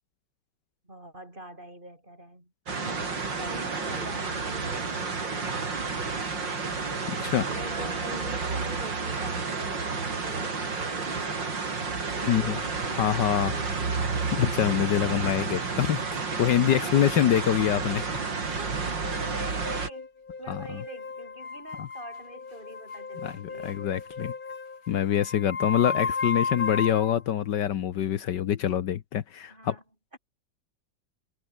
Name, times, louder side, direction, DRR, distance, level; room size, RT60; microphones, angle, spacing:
voice 1, 0.8-6.7 7.4-11.6 12.1-12.7 13.2-14.1 15.0-15.4 16.7-17.1 18.6-20.1 20.4-23.8 29.5-29.8 30.1-30.2, right 1 dB, 25° right, 8.2 m, -44 dB
sound 1, 2.7-19.9, right 4 dB, 75° right, 4.1 m, -31 dB
voice 2, 7.1-7.5 12.3-12.6 12.9-13.5 14.4-18.0 20.5-20.8 21.8-21.9 23.2-24.3 24.9-29.8, left 10 dB, 70° left, 1.6 m, -25 dB
sound 2, 19.0-27.2, left 4 dB, 50° left, 3.0 m, -34 dB
omnidirectional pair, 2.0 m